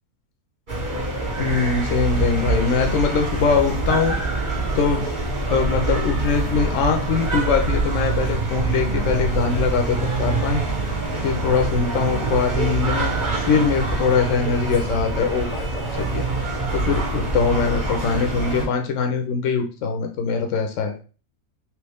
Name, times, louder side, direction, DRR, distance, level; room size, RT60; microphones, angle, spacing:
sound 1, 0.7-18.7, right 3 dB, 35° right, 1.1 m, -25 dB
voice 1, 1.4-4.2 4.8-5.1 5.5-10.6 11.2-20.9, left 5 dB, 65° left, 4 dB, 0.9 m, -22 dB
3.1 x 2.9 x 3.4 m, 0.36 s
omnidirectional pair, 1.6 m